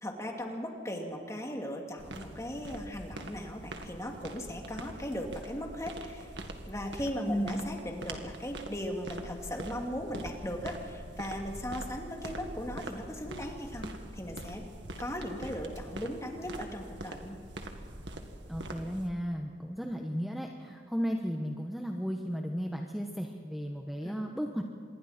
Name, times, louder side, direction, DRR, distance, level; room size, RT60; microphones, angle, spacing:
voice 1, 0.0-6.3 6.7-14.6 15.0-17.4 24.0-24.1, equal, 15° left, 1 dB, 2.6 m, -38 dB
sound 1, 2.0-19.1, right 1 dB, 75° right, 2.0 m, -44 dB
voice 2, 7.3-7.6 18.5-24.7, equal, ahead, 2 dB, 1.1 m, -34 dB
27.0 x 22.5 x 4.4 m, 2.4 s
head